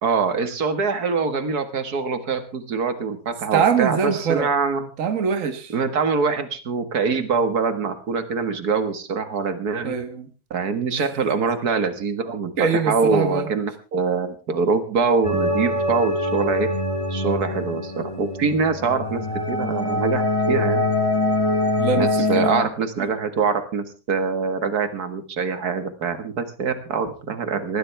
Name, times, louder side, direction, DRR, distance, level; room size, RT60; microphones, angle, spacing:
voice 1, 0.0-4.9 5.7-10.0 10.5-16.7 17.1-20.8 22.0-27.8, right 5 dB, 80° right, 10 dB, 2.2 m, -24 dB
voice 2, 3.5-4.5 5.0-5.7 9.8-10.3 11.0-11.1 12.6-13.5 21.8-22.5 23.0-23.1, right 6 dB, 60° right, 9 dB, 1.7 m, -23 dB
sound 1, 15.2-22.6, left 2 dB, 20° left, 2.4 m, -24 dB
20.0 x 15.0 x 3.4 m, 0.33 s
omnidirectional pair, 1.6 m